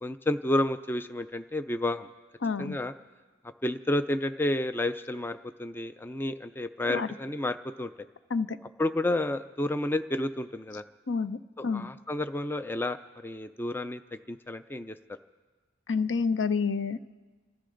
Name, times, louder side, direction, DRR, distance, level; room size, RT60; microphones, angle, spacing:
voice 1, 0.0-2.1 2.6-2.9 3.6-7.9 8.8-10.8 11.7-14.0 14.3-15.0, left 1 dB, 10° left, 10 dB, 0.4 m, -30 dB
voice 2, 2.4-2.8 6.9-7.1 8.3-8.6 11.1-11.4 11.6-11.9 15.9-17.1, left 5 dB, 80° left, 13 dB, 0.6 m, -28 dB
27.5 x 13.5 x 3.9 m, 1.4 s
head